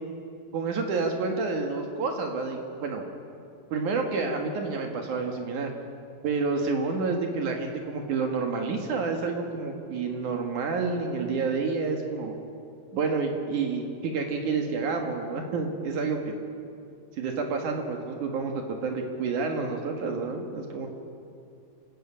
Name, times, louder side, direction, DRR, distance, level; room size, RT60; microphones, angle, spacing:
voice 1, 0.5-3.1 3.7-5.7 6.2-12.4 12.9-16.3 17.2-20.9, right 4 dB, 65° right, 3 dB, 3.0 m, -29 dB
28.0 x 13.5 x 8.6 m, 2.5 s
omnidirectional pair, 4.0 m